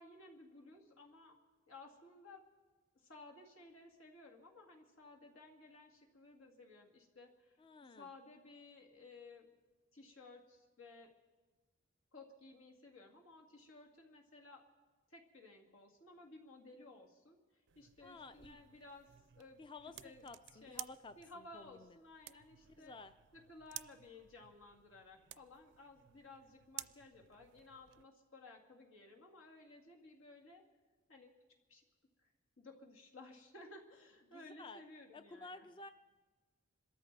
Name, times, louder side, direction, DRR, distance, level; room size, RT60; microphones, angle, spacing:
voice 1, 0.0-1.4 1.7-2.4 2.9-7.6 7.9-9.5 9.9-11.1 12.1-14.6 15.1-19.6 20.0-20.2 20.5-20.8 21.2-23.0 23.3-30.6 31.1-31.3 31.7-31.8 32.6-35.7, left 2 dB, 85° left, 1 dB, 2.3 m, -57 dB
voice 2, 7.6-8.1 18.0-18.6 19.6-22.0 22.8-23.1 34.3-34.8 35.1-35.9, left 3 dB, 25° left, 11 dB, 0.4 m, -53 dB
sound 1, 17.7-28.0, right 14 dB, 60° right, 0.4 m, -54 dB
26.0 x 13.5 x 4.1 m, 1.3 s
head